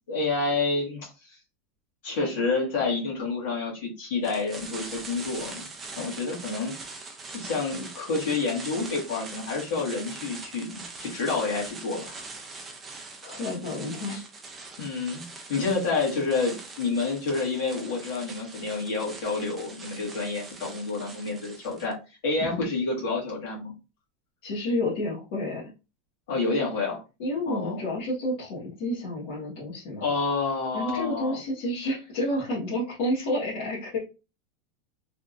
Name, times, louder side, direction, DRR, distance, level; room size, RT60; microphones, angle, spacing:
voice 1, 0.1-1.0 2.0-5.7 5.9-6.7 7.3-12.1 14.8-15.2 15.5-22.0 22.2-23.7 26.3-27.0 27.5-27.8 30.0-31.4, left 3 dB, 65° left, -4 dB, 1.7 m, -28 dB
sound 1, 4.2-21.9, right 3 dB, 15° right, 0.5 m, -42 dB
voice 2, 13.2-14.3 22.5-22.7 24.4-25.7 27.2-30.0 30.7-34.0, left 1 dB, 50° left, -8 dB, 1.5 m, -30 dB
3.4 x 2.8 x 2.5 m, 0.29 s
supercardioid pair, 180°, 0 cm